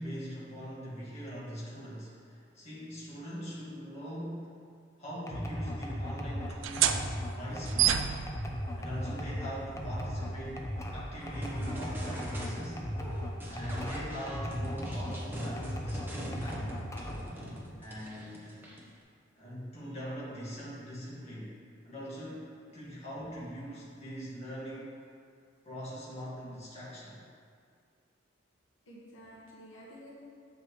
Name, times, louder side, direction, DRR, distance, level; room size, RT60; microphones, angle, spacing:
voice 1, 0.0-4.6 5.0-7.1 7.4-8.0 8.7-12.9 13.5-16.7 17.7-18.6 19.3-25.1 25.6-27.2, equal, 35° left, -8 dB, 1.9 m, -42 dB
sound 1, 5.3-15.2 15.6-17.3, equal, 15° left, 0.6 m, -37 dB
sound 2, 6.5-13.8, right 10 dB, 75° right, 0.4 m, -34 dB
sound 3, 11.2-12.7 13.0-18.9, equal, 10° right, 1.0 m, -42 dB
voice 2, 22.7-23.0 28.9-30.1, equal, 85° left, -5 dB, 1.7 m, -52 dB
8.1 x 7.4 x 3.2 m, 2.2 s
head